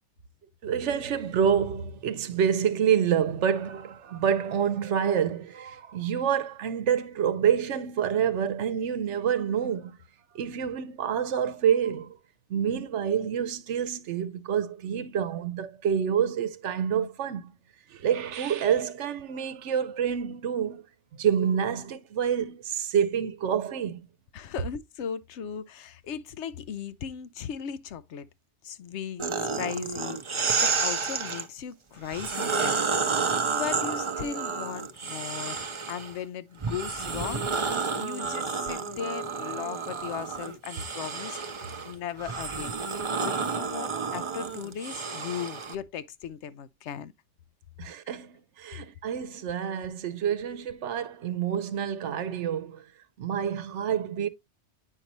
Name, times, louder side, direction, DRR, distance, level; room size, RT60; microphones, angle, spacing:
voice 1, 0.6-10.0 10.3-12.2 12.5-17.5 17.9-20.8 21.2-24.1 47.8-52.8 53.2-54.3, right 8 dB, 85° right, 1.0 m, -27 dB
voice 2, 24.3-28.3 28.6-32.9 33.5-37.5 37.9-41.4 41.8-42.7 43.2-47.1 48.1-48.2, left 8 dB, 80° left, 1.0 m, -37 dB
sound 1, 29.2-31.5 32.0-36.1 36.6-45.8, right 5 dB, 35° right, 0.6 m, -30 dB
8.7 x 5.3 x 2.9 m
omnidirectional pair, 1.2 m